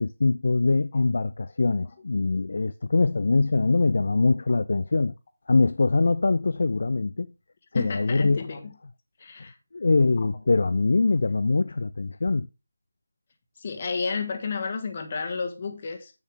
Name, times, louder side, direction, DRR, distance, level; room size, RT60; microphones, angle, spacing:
voice 1, 0.0-5.2 5.5-7.3 7.7-8.4 9.7-12.5, left 3 dB, 50° left, 0.3 m, -23 dB
voice 2, 7.7-8.7 9.2-9.6 10.2-10.3 13.6-16.1, left 5 dB, 35° left, 1.4 m, -31 dB
8.1 x 7.2 x 3.5 m
figure-of-eight pair, 160°, 0 cm